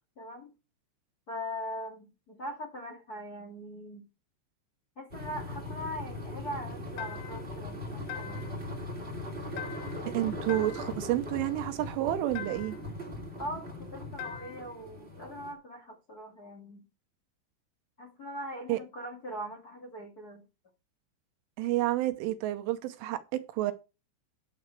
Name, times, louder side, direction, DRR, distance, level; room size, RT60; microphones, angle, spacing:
voice 1, 0.1-0.5 1.3-4.0 4.9-8.5 13.4-16.8 18.0-20.4, equal, 55° left, 1.0 m, -41 dB
sound 1, 5.1-15.5, left 1 dB, 25° right, 1.4 m, -40 dB
sound 2, 7.0-7.5 8.1-8.6 9.6-10.1 10.5-11.0 12.3-12.9 14.2-14.7, left 9 dB, 75° left, 2.6 m, -42 dB
voice 2, 10.1-12.8 18.7-18.8 21.6-23.7, right 15 dB, 80° right, 3.2 m, -30 dB
9.9 x 7.9 x 4.6 m
omnidirectional pair, 5.9 m